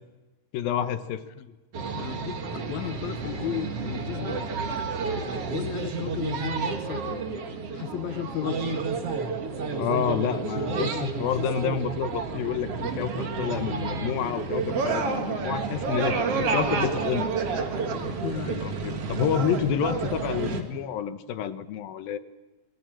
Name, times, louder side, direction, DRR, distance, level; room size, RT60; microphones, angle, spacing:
voice 1, 0.5-1.2 9.7-13.1 13.4-16.2 16.5-17.3 18.6-22.2, left 8 dB, 80° left, 11 dB, 2.9 m, -29 dB
sound 1, 1.7-20.6, right 4 dB, 45° right, 2.7 m, -30 dB
voice 2, 1.9-4.5 5.5-7.2 7.7-8.8 14.7-15.0 16.0-17.1 18.0-18.7, left 11 dB, 65° left, 12 dB, 1.9 m, -35 dB
26.0 x 22.0 x 7.6 m, 1.2 s
omnidirectional pair, 4.1 m